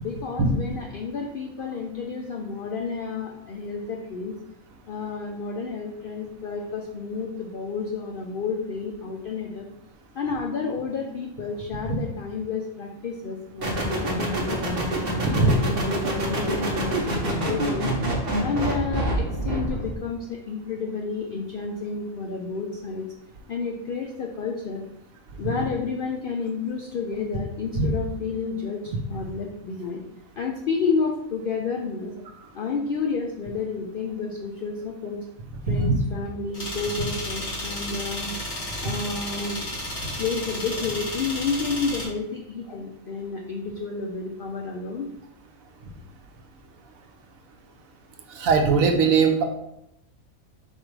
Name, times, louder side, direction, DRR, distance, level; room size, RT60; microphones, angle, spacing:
voice 1, 0.0-4.3 4.9-9.7 10.1-14.8 15.3-17.9 18.2-23.1 23.5-24.8 25.4-30.0 30.4-32.1 32.5-35.2 35.7-38.3 38.8-39.7 40.2-45.1, left 4 dB, 75° left, 1 dB, 0.5 m, -30 dB
sound 1, 13.6-20.0, right 1 dB, 45° right, 1.0 m, -26 dB
sound 2, 36.5-42.1, left 1 dB, 55° left, 1.7 m, -32 dB
voice 2, 48.4-49.4, right 4 dB, 80° right, 5 dB, 1.1 m, -20 dB
4.2 x 2.5 x 4.6 m, 0.80 s
omnidirectional pair, 1.4 m